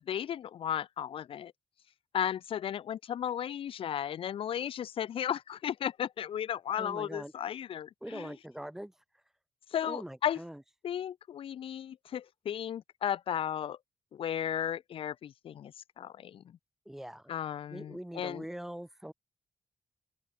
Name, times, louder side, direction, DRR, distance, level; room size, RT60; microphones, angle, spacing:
voice 1, 0.1-1.5 2.1-8.3 9.7-10.4 10.8-13.8 14.1-16.4 17.3-18.4, left 9 dB, 65° left, 1.0 m, -35 dB
voice 2, 6.8-7.3 8.0-8.9 9.8-10.6 16.9-17.3 17.7-19.1, right 1 dB, 5° right, 6.8 m, -42 dB
open air
wide cardioid pair, 175°, 10 cm